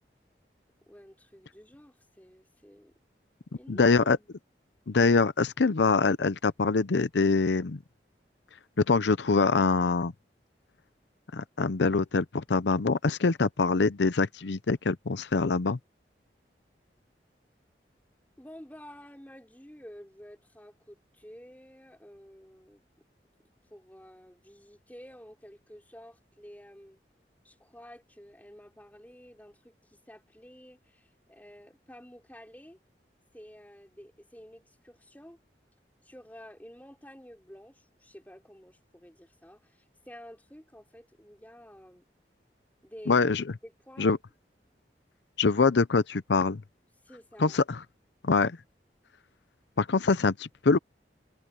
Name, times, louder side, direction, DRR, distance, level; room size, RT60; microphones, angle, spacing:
voice 1, 0.9-2.9 3.5-4.4 18.4-22.8 23.7-27.0 27.4-32.8 33.3-35.4 36.0-42.1 42.8-43.2 43.6-44.2 47.0-47.6, equal, 10° left, 4.3 m, -51 dB
voice 2, 3.7-4.2 4.9-7.8 8.9-10.1 11.3-15.8 43.1-43.4 44.0-44.2 45.4-46.6 47.4-47.8 48.2-48.6 49.8-50.8, left 4 dB, 85° left, 0.7 m, -24 dB
head